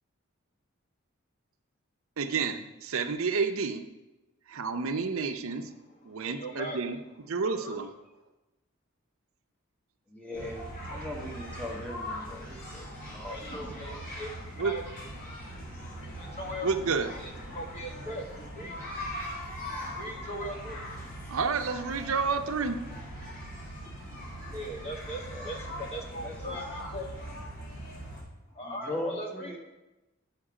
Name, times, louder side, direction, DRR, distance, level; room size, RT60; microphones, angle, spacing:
voice 1, 2.2-3.8 4.5-5.7 6.1-7.0 7.3-7.9 14.6-14.8 16.6-17.1 21.3-22.8, right 5 dB, 80° right, 8 dB, 0.6 m, -30 dB
voice 2, 6.0-6.8 7.1-7.9 13.3-14.8 15.4-15.5 15.9-18.9 19.9-20.8 24.5-27.1 28.5-29.6, equal, 30° left, 1 dB, 1.3 m, -40 dB
voice 3, 10.2-10.6 10.9-12.9 13.1-13.4 13.8-14.0 25.3-25.5 26.2-26.6 28.8-29.6, left 1 dB, 5° left, 0 dB, 1.3 m, -38 dB
sound 1, 10.3-28.2, equal, 45° left, 3.2 m, -41 dB
8.7 x 5.9 x 4.8 m, 1.0 s
head